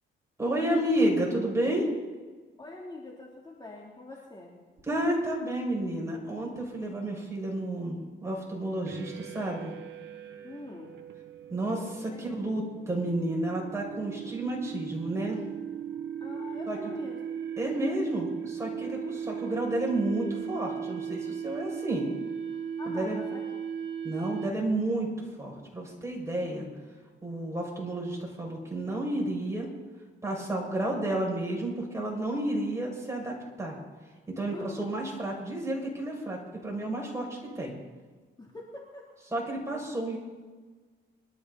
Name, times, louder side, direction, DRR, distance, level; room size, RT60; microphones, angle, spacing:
voice 1, 0.4-1.9 4.9-9.7 11.5-15.4 16.7-16.8 17.6-22.0 22.9-23.2 24.0-25.1 25.4-26.7 27.2-29.7 30.2-33.7 34.4-37.8 39.3-40.2, right 1 dB, 15° right, -2 dB, 6.0 m, -31 dB
voice 2, 2.6-4.6 10.4-10.9 12.0-12.2 16.2-17.2 18.9-19.2 22.8-23.4 34.5-34.9 38.4-39.0, left 2 dB, 20° left, -2 dB, 2.9 m, -43 dB
sound 1, 8.9-24.8, right 8 dB, 70° right, 1.3 m, -38 dB
23.5 x 13.0 x 4.1 m, 1.4 s
cardioid pair, 90°, 20 cm